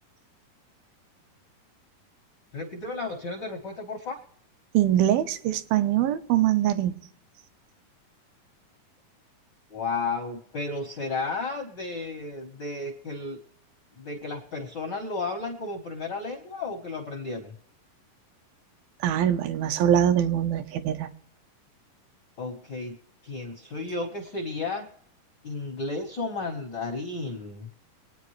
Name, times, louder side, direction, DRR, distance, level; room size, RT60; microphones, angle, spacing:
voice 1, 2.5-4.2 9.7-13.4 13.9-17.5 22.4-23.0 23.2-24.9 25.4-27.7, left 3 dB, 80° left, 0.9 m, -33 dB
voice 2, 4.7-7.0 19.0-21.1, right 11 dB, 85° right, 2.6 m, -23 dB
24.5 x 9.3 x 3.2 m
omnidirectional pair, 4.1 m